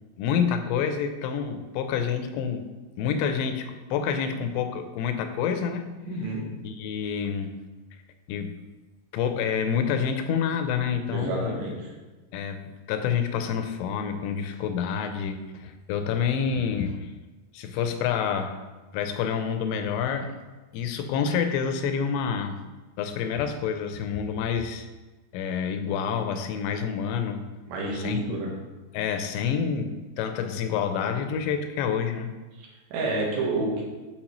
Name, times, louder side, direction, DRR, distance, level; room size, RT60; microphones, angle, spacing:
voice 1, 0.2-2.6 3.0-5.9 6.6-7.6 8.3-8.6 9.1-11.6 12.3-17.1 17.5-18.6 18.9-20.4 20.7-22.6 23.0-24.9 25.3-27.5 27.9-28.4 28.9-32.3, left 7 dB, 90° left, 7 dB, 2.8 m, -28 dB
voice 2, 6.0-6.4 11.1-11.9 27.7-28.5 32.6-33.8, right 2 dB, 80° right, -2 dB, 3.2 m, -29 dB
8.8 x 4.2 x 3.0 m, 1.2 s
omnidirectional pair, 5.0 m